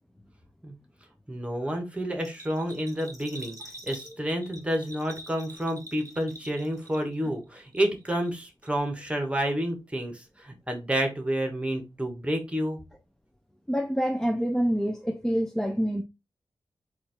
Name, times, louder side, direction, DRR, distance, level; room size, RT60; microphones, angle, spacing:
voice 1, 1.3-3.6 3.9-12.8, equal, 10° right, 1.2 m, -29 dB
Bell, 2.2-7.3 7.6-8.4 8.6-8.7, right 1 dB, 35° right, 0.9 m, -45 dB
voice 2, 13.7-16.0, equal, 5° left, 0.5 m, -26 dB
4.0 x 2.5 x 4.4 m
wide cardioid pair, 105°, 9 cm